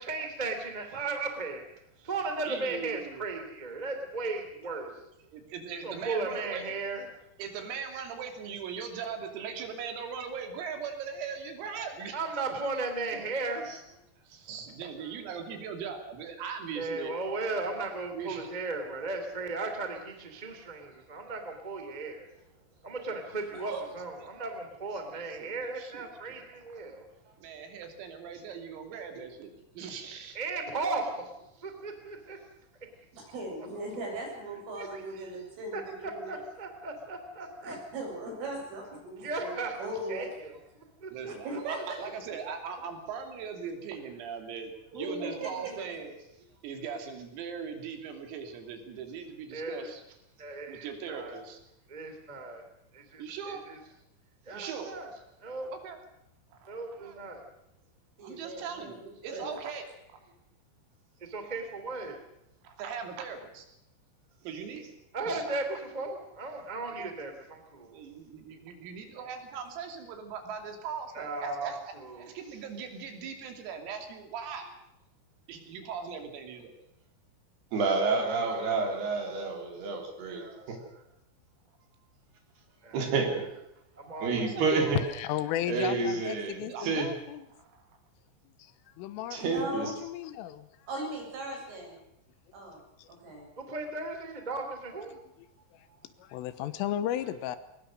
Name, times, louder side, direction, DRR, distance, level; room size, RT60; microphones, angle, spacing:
voice 1, 0.0-1.6 2.0-4.9 5.8-7.1 12.1-13.8 16.8-22.3 22.8-27.1 30.3-31.3 31.6-32.4 34.7-35.3 35.7-37.8 39.2-39.8 40.1-41.3 45.0-45.8 49.5-49.9 50.4-51.4 51.9-52.6 52.9-53.8 54.5-55.1 55.4-55.7 56.7-57.4 61.2-62.2 65.1-65.6 65.9-67.9 69.2-69.3 71.1-72.3 78.1-79.2 80.3-81.0 82.8-83.1 84.0-84.4 84.8-85.1 93.6-95.2, right 3 dB, 15° right, 6 dB, 1.7 m, -36 dB
voice 2, 2.5-3.3 4.6-5.0 5.3-6.6 7.4-12.2 12.5-12.6 14.3-17.2 18.1-18.5 23.7-23.8 25.1-26.4 27.4-30.4 34.1-34.2 41.1-46.1 46.6-50.0 50.7-51.6 53.2-53.6 54.5-55.0 55.7-56.0 56.5-57.2 58.2-59.0 59.2-59.9 62.6-63.7 64.4-64.9 65.3-65.6 67.0-67.1 67.9-74.7 75.5-76.7 84.4-84.8 86.6-86.9 87.5-88.0, right 6 dB, 85° right, 5 dB, 5.5 m, -40 dB
voice 3, 33.1-36.3 37.6-40.3 41.3-42.0 44.9-45.7 58.2-59.6 89.4-89.9 90.9-92.0 92.5-92.8 93.1-93.5, right 2 dB, 70° right, 0 dB, 10.0 m, -38 dB
voice 4, 77.7-80.8 82.9-83.4 84.2-85.0 85.7-87.1 89.3-89.9, right 4 dB, 55° right, 3 dB, 5.4 m, -29 dB
voice 5, 85.0-87.5 88.6-88.7 89.0-89.4 89.8-90.7 93.0-93.1 95.1-95.2 95.7-95.9 96.2-97.6, left 11 dB, 80° left, 13 dB, 3.6 m, -34 dB
21.5 x 20.5 x 6.5 m, 0.83 s
omnidirectional pair, 5.9 m